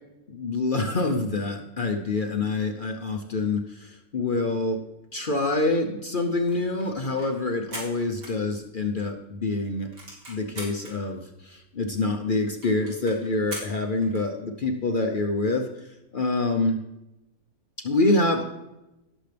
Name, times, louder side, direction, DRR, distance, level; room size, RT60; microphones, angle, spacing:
voice 1, 0.3-4.8 5.1-9.9 10.3-15.7 16.1-16.7 17.8-18.4, left 2 dB, 45° left, 3 dB, 0.7 m, -26 dB
sound 1, 6.5-9.0 9.4-9.5 9.7-10.9 11.5-11.6 11.8-11.9 12.2-12.3 12.6-14.3, right 1 dB, 65° right, 3.1 m, -41 dB
17.5 x 6.7 x 3.4 m, 0.95 s
omnidirectional pair, 1.6 m